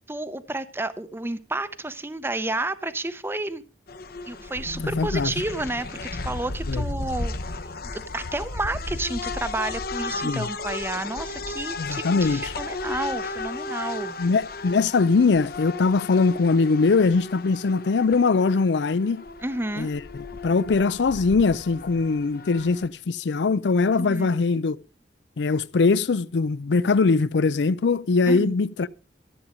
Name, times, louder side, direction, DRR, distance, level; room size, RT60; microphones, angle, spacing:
voice 1, 0.1-3.6 4.3-7.3 7.9-14.2 19.4-19.9 23.9-24.3 28.3-28.5, right 2 dB, 15° right, 0.7 m, -31 dB
sound 1, 3.9-22.9, left 3 dB, 60° left, 1.0 m, -34 dB
voice 2, 4.8-5.3 6.7-6.8 10.2-10.5 11.8-12.5 14.2-19.2 19.8-20.0 20.4-24.8 25.4-28.9, left 4 dB, 80° left, 0.5 m, -21 dB
13.5 x 8.6 x 5.1 m
head